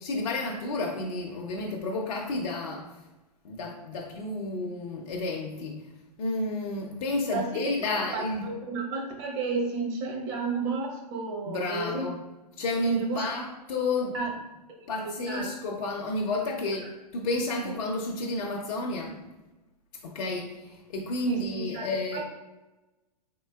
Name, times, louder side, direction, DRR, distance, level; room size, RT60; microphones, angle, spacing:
voice 1, 0.0-2.9 3.4-5.8 6.2-8.5 11.5-12.2 12.6-14.2 14.9-19.3 20.0-22.2, left 2 dB, 55° left, 0 dB, 0.7 m, -31 dB
voice 2, 7.9-12.1 12.9-13.3 14.1-14.3 14.8-15.5 17.6-17.7 21.3-22.2, right 4 dB, 40° right, 0 dB, 1.0 m, -32 dB
4.2 x 3.7 x 2.3 m, 1.1 s
hypercardioid pair, 115°, 21 cm